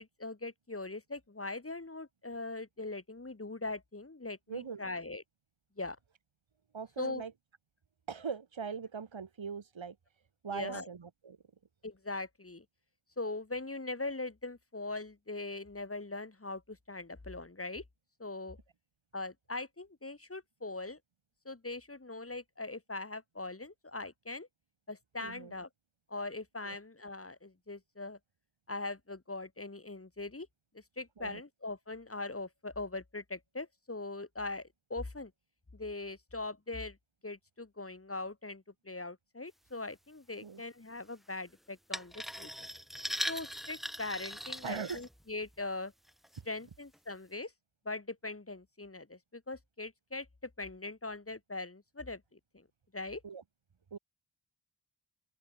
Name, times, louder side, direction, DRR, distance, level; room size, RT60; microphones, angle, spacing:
voice 1, 0.0-5.2 5.8-6.0 7.0-7.2 10.5-10.9 11.8-12.6 13.2-17.8 18.2-18.6 19.1-21.0 21.4-24.5 24.9-25.7 26.1-28.2 28.7-30.5 30.7-35.3 35.7-37.0 37.2-42.7 43.3-45.9 46.5-47.5 47.8-52.7 52.9-53.2, left 2 dB, 30° left, 4.5 m, -41 dB
voice 2, 4.5-4.8 6.7-7.3 8.1-10.0 10.4-11.4 25.2-25.5 26.6-26.8 31.2-31.4 40.4-40.6 44.6-45.0 46.4-46.5 53.2-53.4 53.9-54.0, right 6 dB, 75° right, 3.6 m, -41 dB
sound 1, 41.9-45.5 46.1-46.4 46.9-47.0, equal, ahead, 4.3 m, -40 dB
open air
wide cardioid pair, 90°, 47 cm